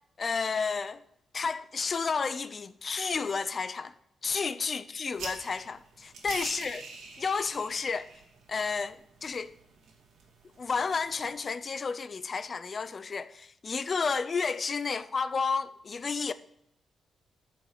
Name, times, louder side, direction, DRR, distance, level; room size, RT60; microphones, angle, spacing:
voice 1, 0.2-1.0 1.3-3.9 4.2-6.9 7.2-8.1 8.5-9.5 10.6-16.3, left 5 dB, 40° left, 0.5 m, -31 dB
sound 1, 5.1-11.3, right 3 dB, 80° right, 2.1 m, -46 dB
9.3 x 5.2 x 5.5 m
cardioid pair, 115°, 0 cm